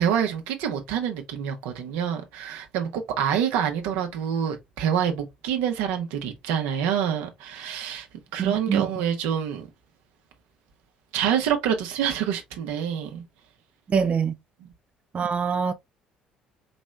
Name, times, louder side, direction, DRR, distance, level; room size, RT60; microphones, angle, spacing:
voice 1, 0.0-8.1 8.3-9.7 11.1-13.2 14.6-14.7, right 8 dB, 75° right, 1.1 m, -26 dB
voice 2, 8.4-8.8 13.9-14.3 15.1-15.7, right 6 dB, 40° right, 0.6 m, -24 dB
5.2 x 3.1 x 2.4 m
hypercardioid pair, 55°, 4 cm